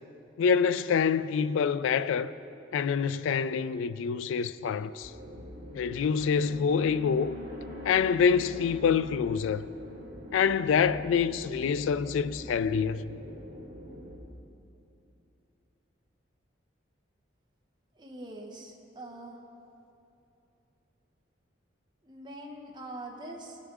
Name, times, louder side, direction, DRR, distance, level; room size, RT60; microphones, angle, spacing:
voice 1, 0.4-2.4 2.7-5.1 5.7-7.4 7.8-9.7 10.3-13.2, left 6 dB, 85° left, 0.3 m, -26 dB
sound 1, 5.0-14.2, left 1 dB, 65° right, 2.3 m, -44 dB
voice 2, 17.9-19.4 22.0-23.6, right 1 dB, 25° right, 0.8 m, -43 dB
18.5 x 6.7 x 3.6 m
head